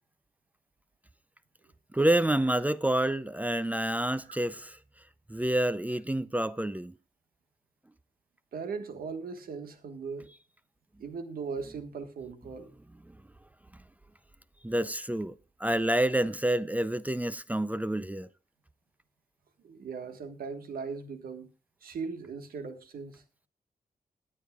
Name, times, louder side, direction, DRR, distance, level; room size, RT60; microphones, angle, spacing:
voice 1, 1.9-4.8 5.3-6.9 14.6-18.3, right 1 dB, 10° right, 0.5 m, -28 dB
voice 2, 8.5-10.3 11.0-12.7 19.6-21.5 21.8-23.2, right 5 dB, 90° right, 1.5 m, -39 dB
21.5 x 8.5 x 2.3 m
cardioid pair, 70°, 15 cm